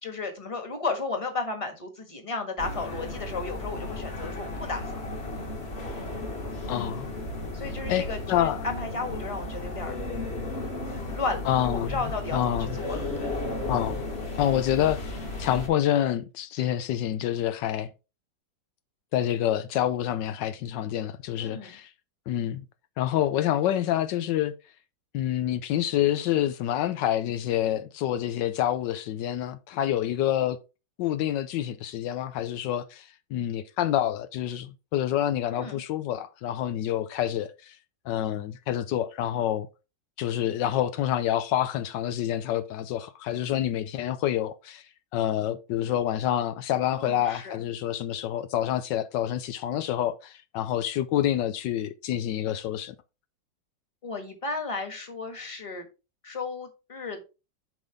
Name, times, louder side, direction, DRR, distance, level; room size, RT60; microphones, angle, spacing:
voice 1, 0.0-4.8 6.7-7.0 7.5-10.0 10.9-12.4 12.8-13.3 21.4-21.7 35.5-35.8 46.9-47.6 54.0-55.8 56.2-57.2, left 3 dB, 20° left, 1.5 m, -34 dB
sound 1, 2.6-15.7, left 2 dB, 35° left, 1.7 m, -34 dB
voice 2, 6.7-7.1 7.9-8.7 11.5-12.1 12.3-12.8 13.7-14.0 14.4-17.9 19.1-21.9 22.3-22.6 23.0-24.5 25.1-30.6 31.0-37.8 38.1-39.7 40.2-44.8 45.1-52.9, left 11 dB, 80° left, 1.3 m, -27 dB
7.8 x 5.5 x 3.5 m
omnidirectional pair, 1.9 m